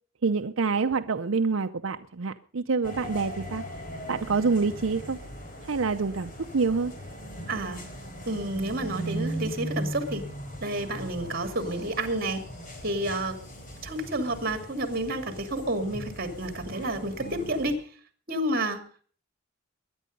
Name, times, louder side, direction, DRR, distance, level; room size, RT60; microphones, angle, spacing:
voice 1, 0.2-3.6 4.1-5.2 5.7-6.9, right 4 dB, 85° right, 7 dB, 0.7 m, -27 dB
sound 1, 2.8-17.7, equal, 40° left, 3.9 m, -39 dB
voice 2, 7.5-7.8 8.3-10.2 10.6-12.4 12.8-13.4 13.8-17.8 18.3-18.8, right 1 dB, 45° right, 8 dB, 2.7 m, -30 dB
20.5 x 10.5 x 5.3 m, 0.42 s
head